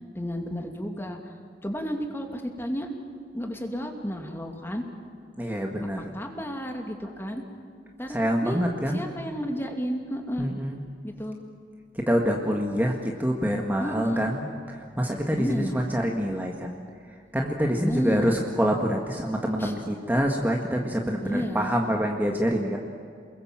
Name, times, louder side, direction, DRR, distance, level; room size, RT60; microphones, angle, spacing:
voice 1, 0.1-1.3 1.6-2.9 3.3-4.8 6.1-7.4 8.0-8.6 8.9-10.5 11.0-11.4 13.8-14.3 15.3-15.8 17.7-18.4 19.6-19.7 21.2-21.7, equal, 15° left, 3 dB, 2.4 m, -32 dB
voice 2, 5.4-6.2 8.1-9.0 10.4-10.8 11.9-16.8 17.3-22.8, equal, 10° right, 1 dB, 1.7 m, -26 dB
29.0 x 21.5 x 7.5 m, 2.2 s
head